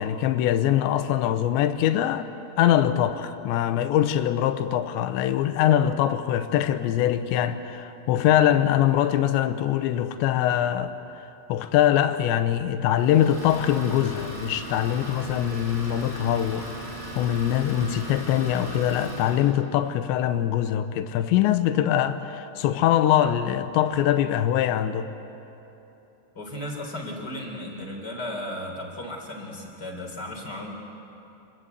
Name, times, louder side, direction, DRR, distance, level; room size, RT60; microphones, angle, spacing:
voice 1, 0.0-2.3 2.6-16.7 17.2-25.1, left 11 dB, 85° left, 10 dB, 3.1 m, -23 dB
Idling, 13.0-19.5, right 1 dB, 10° left, 5.6 m, -37 dB
voice 2, 26.4-30.7, left 1 dB, 25° left, 1 dB, 3.6 m, -35 dB
28.0 x 21.5 x 8.2 m, 3.0 s
omnidirectional pair, 5.2 m